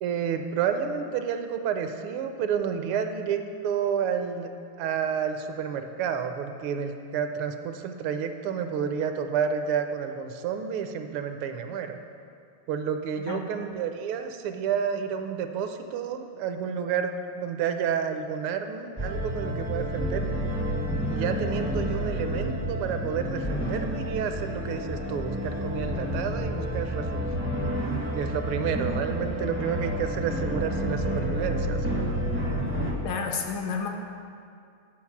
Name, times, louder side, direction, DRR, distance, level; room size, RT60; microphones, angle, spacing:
voice 1, 0.0-4.5 4.8-12.0 12.7-20.5 21.1-27.3 28.1-32.1, right 7 dB, 80° right, 7 dB, 1.4 m, -30 dB
sound 1, 19.0-32.9, equal, 20° right, 0.3 m, -30 dB
voice 2, 33.0-33.9, left 5 dB, 70° left, 2 dB, 1.3 m, -30 dB
8.4 x 4.9 x 5.8 m, 2.3 s
omnidirectional pair, 2.4 m